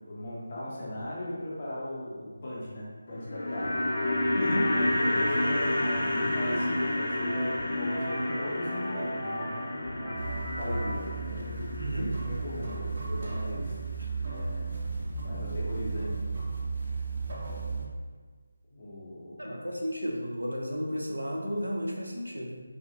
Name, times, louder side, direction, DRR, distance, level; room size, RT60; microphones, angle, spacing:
voice 1, 0.0-3.8 4.6-13.7 14.1-14.7 15.2-16.4 18.7-19.3, left 1 dB, 35° left, -7 dB, 0.9 m, -37 dB
sound 1, 3.1-13.4 13.6-13.7, left 1 dB, 50° left, 0.4 m, -30 dB
sound 2, 3.6-11.0, equal, 5° right, 0.8 m, -38 dB
voice 2, 4.3-4.7 11.8-12.1 19.4-22.6, equal, 80° right, -1 dB, 0.7 m, -33 dB
sound 3, 10.1-17.9, right 4 dB, 45° right, 0.6 m, -34 dB
3.5 x 2.5 x 2.9 m, 1.5 s
figure-of-eight pair, 155°, 0 cm